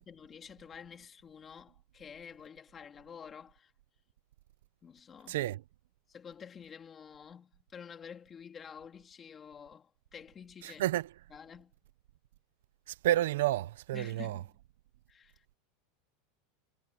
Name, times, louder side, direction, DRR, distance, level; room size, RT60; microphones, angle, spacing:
voice 1, 0.0-3.7 4.8-5.4 6.1-11.0 11.3-11.7 13.9-14.6 15.1-15.6, left 7 dB, 20° left, 2.7 m, -50 dB
voice 2, 5.3-5.6 10.6-11.1 13.0-14.4, right 14 dB, 80° right, 0.9 m, -30 dB
supercardioid pair, 160°, 0 cm